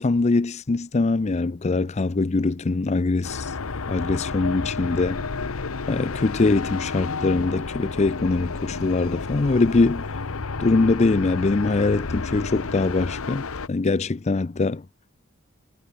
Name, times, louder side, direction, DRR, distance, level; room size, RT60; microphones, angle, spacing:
voice 1, 0.0-3.5 3.9-5.2 5.9-10.1 10.6-14.8, left 3 dB, 30° left, 0.5 m, -22 dB
sound 1, 3.2-13.7, left 4 dB, 85° left, 1.0 m, -31 dB
head